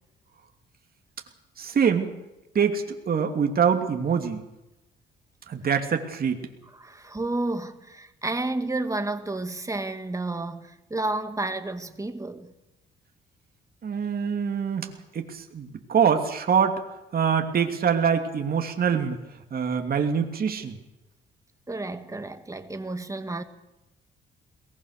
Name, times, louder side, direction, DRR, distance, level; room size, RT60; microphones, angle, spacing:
voice 1, 1.6-2.1 2.5-4.4 5.5-6.4 13.8-16.8 17.1-19.1 19.5-20.8, right 7 dB, 50° right, 2.8 m, -24 dB
voice 2, 6.7-12.5 21.7-23.4, right 2 dB, 15° right, 2.1 m, -31 dB
22.0 x 20.0 x 6.7 m
cardioid pair, 90°, 20 cm